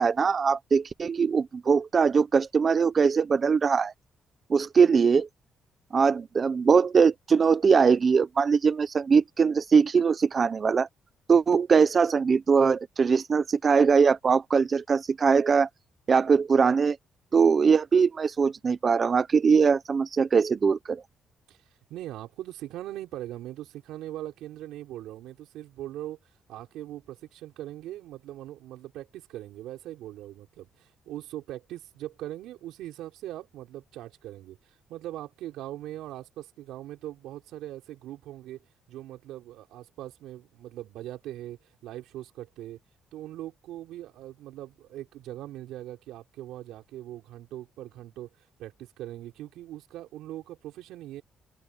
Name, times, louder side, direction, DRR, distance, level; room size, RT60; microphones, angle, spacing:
voice 1, 0.0-3.9 4.5-5.3 5.9-10.9 11.3-15.7 16.1-17.0 17.3-21.0, right 5 dB, 40° right, 0.8 m, -21 dB
voice 2, 21.9-26.2 26.5-42.8 43.1-51.2, right 14 dB, 90° right, 5.7 m, -41 dB
open air
cardioid pair, 90°, 0 cm